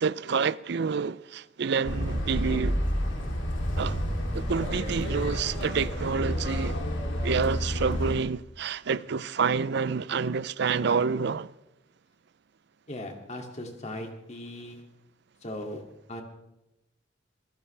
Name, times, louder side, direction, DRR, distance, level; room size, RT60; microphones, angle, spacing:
voice 1, 0.0-2.8 3.8-4.0 4.3-6.8 7.2-11.5, right 5 dB, 60° right, 0.5 m, -28 dB
sound 1, 1.8-8.2, equal, 80° left, 3.0 m, -30 dB
voice 2, 12.9-14.8 15.4-15.8 16.1-16.2, left 1 dB, 35° left, 2.5 m, -38 dB
25.5 x 16.0 x 3.4 m
head